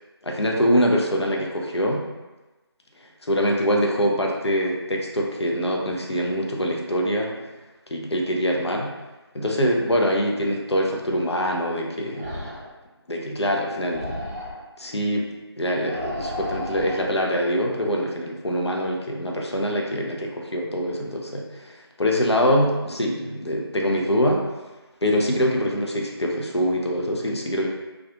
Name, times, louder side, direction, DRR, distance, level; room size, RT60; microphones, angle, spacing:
voice 1, 0.2-2.0 3.2-7.3 7.9-8.9 9.3-12.5 13.1-14.2 14.8-15.3 15.6-24.4 25.0-27.7, equal, 75° left, 0 dB, 0.5 m, -24 dB
sound 1, 12.1-12.8 13.9-14.7 15.8-17.1, left 1 dB, 35° right, 0.6 m, -33 dB
2.7 x 2.3 x 2.3 m, 1.2 s
figure-of-eight pair, 170°, 14 cm